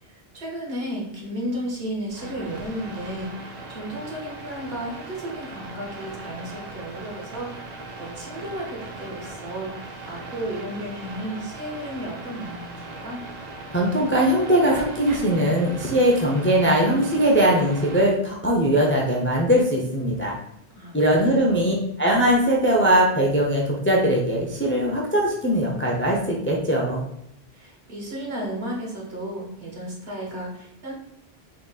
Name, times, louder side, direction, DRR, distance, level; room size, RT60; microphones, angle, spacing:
voice 1, 0.0-13.2 20.7-21.5 27.5-30.9, equal, 70° right, -2 dB, 1.3 m, -34 dB
sound 1, 2.1-18.1, right 3 dB, 50° right, 0.6 m, -39 dB
voice 2, 13.7-20.3 20.9-27.0, right 1 dB, 20° left, -1 dB, 0.3 m, -20 dB
3.8 x 3.6 x 2.3 m, 0.76 s
omnidirectional pair, 1.1 m